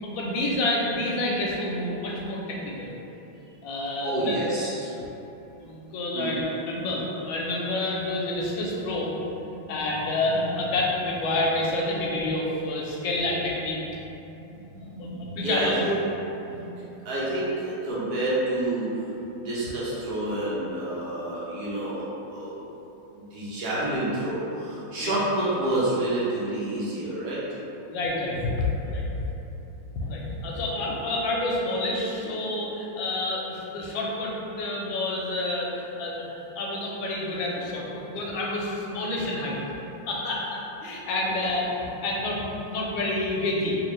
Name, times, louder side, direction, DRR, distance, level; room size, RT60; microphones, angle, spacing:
voice 1, 0.0-2.9 3.6-4.3 5.6-9.1 9.7-13.8 15.0-15.1 15.4-15.8 25.0-25.1 27.9-29.0 30.0-36.3 36.5-39.6 40.1-43.8, left 2 dB, 75° left, -3 dB, 1.2 m, -28 dB
voice 2, 4.0-5.0 6.1-6.3 9.2-9.9 10.3-10.6 14.3-16.0 16.4-18.9 19.3-22.6 23.1-27.4 41.2-41.4, right 1 dB, 65° right, -8 dB, 1.1 m, -29 dB
3.2 x 2.8 x 3.1 m, 3.0 s
omnidirectional pair, 2.2 m